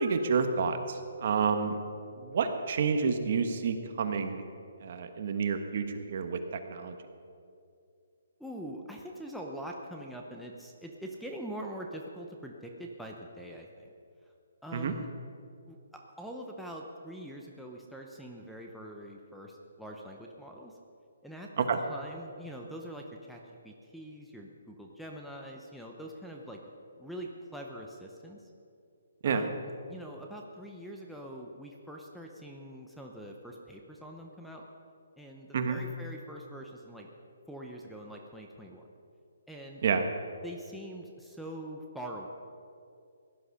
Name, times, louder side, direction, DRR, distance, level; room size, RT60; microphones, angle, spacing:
voice 1, 0.0-1.8 2.2-4.4 4.8-6.9 14.7-14.9 21.6-21.8 29.2-29.5 35.5-35.8 39.8-40.0, right 5 dB, 45° right, 7 dB, 1.3 m, -29 dB
voice 2, 8.4-13.9 14.6-15.1 15.7-20.8 21.2-26.6 27.0-28.5 29.2-34.6 35.2-37.1 37.5-38.9 39.5-39.8 40.4-42.3, right 1 dB, ahead, 0 dB, 0.8 m, -44 dB
17.0 x 11.0 x 5.7 m, 2.4 s
hypercardioid pair, 165°, 0 cm